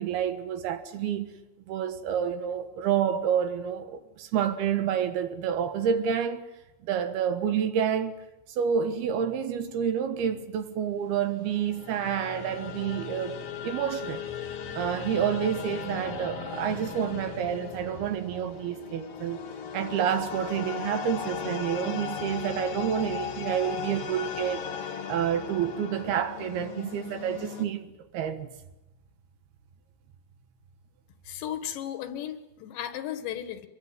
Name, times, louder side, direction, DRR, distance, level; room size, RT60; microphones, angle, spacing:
voice 1, 0.0-1.3 1.7-6.4 6.8-8.1 8.6-14.2 14.6-19.4 19.7-24.7 25.1-28.5, right 8 dB, 70° right, 3.1 m, -29 dB
sound 1, 11.2-27.7, left 7 dB, 60° left, 1.6 m, -37 dB
voice 2, 31.3-33.7, left 10 dB, 80° left, 3.7 m, -35 dB
24.0 x 22.5 x 9.5 m
omnidirectional pair, 5.0 m